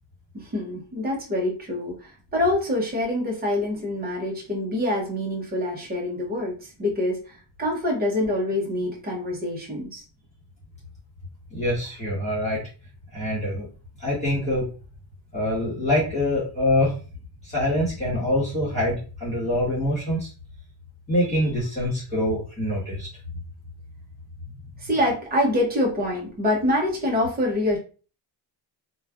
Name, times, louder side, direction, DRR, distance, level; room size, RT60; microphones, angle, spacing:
voice 1, 0.3-10.0 24.8-27.8, left 1 dB, 20° right, -2 dB, 0.7 m, -26 dB
voice 2, 11.5-12.6 13.1-13.7 14.0-14.6 15.3-16.9 17.4-20.3 21.1-23.1, left 1 dB, 15° left, -9 dB, 1.3 m, -25 dB
3.1 x 2.2 x 2.3 m, 0.36 s
cardioid pair, 175°, 45 cm